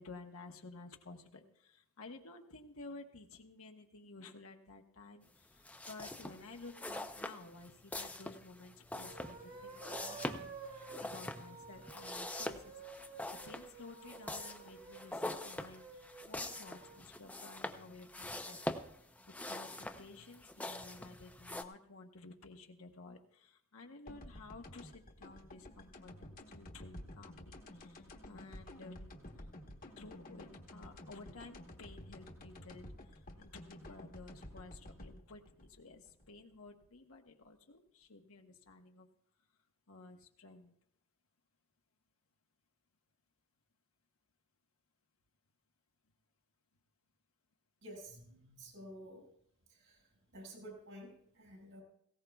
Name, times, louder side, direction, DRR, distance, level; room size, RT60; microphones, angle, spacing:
voice 1, 0.0-18.6 19.5-29.1 30.0-32.9 33.4-39.1 39.9-40.7, left 3 dB, 70° left, 3 dB, 1.1 m, -54 dB
sound 1, 5.6-21.6, left 1 dB, 5° left, 0.5 m, -44 dB
sound 2, 8.9-17.1, right 5 dB, 40° right, 1.3 m, -52 dB
sound 3, 24.1-36.9, left 1 dB, 40° left, 1.2 m, -52 dB
voice 2, 47.8-49.2 49.8-50.0 50.3-51.8, right 1 dB, 65° right, 0 dB, 5.4 m, -51 dB
19.0 x 17.0 x 2.3 m, 0.69 s
head